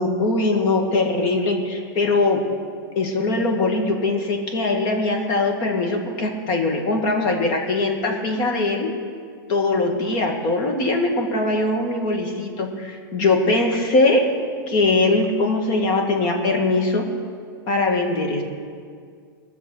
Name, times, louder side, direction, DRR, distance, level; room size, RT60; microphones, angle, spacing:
voice 1, 0.0-2.4 3.0-8.9 9.5-14.2 14.7-17.0 17.7-18.4, left 2 dB, 40° left, 2 dB, 2.1 m, -21 dB
20.5 x 6.9 x 6.4 m, 2.1 s
supercardioid pair, 145°, 12 cm